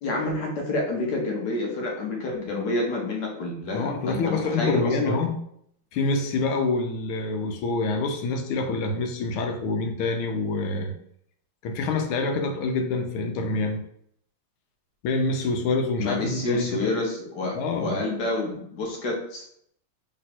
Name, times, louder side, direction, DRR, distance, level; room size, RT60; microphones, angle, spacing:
voice 1, 0.0-5.2 16.0-19.4, left 2 dB, 60° left, 0 dB, 1.4 m, -28 dB
voice 2, 3.7-5.4 5.9-10.9 11.6-13.8 15.0-16.9 17.5-18.0, left 3 dB, 85° left, 5 dB, 1.6 m, -26 dB
3.4 x 3.2 x 4.2 m, 0.69 s
omnidirectional pair, 2.3 m